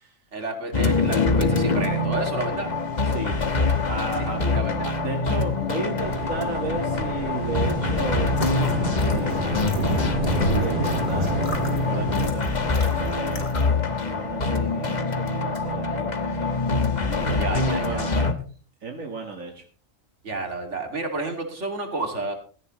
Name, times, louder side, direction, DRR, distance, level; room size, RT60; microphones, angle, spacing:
voice 1, 0.3-2.7 4.4-5.0 17.0-18.2 20.2-22.3, right 2 dB, 60° right, 4 dB, 3.0 m, -31 dB
sound 1, 0.7-18.3, left 3 dB, 35° left, 1.3 m, -25 dB
voice 2, 3.1-3.4 3.9-4.4 5.0-8.8 9.1-10.0 10.6-11.4 11.7-13.4 14.1-16.1 16.4-16.6 17.5-18.3 18.8-19.6, right 3 dB, 85° right, 2 dB, 2.1 m, -34 dB
sound 2, 6.0-12.3, right 1 dB, 40° right, 2.1 m, -28 dB
sound 3, 8.3-13.8, left 2 dB, 85° left, 2.9 m, -40 dB
17.0 x 14.0 x 3.1 m, 0.39 s
omnidirectional pair, 1.3 m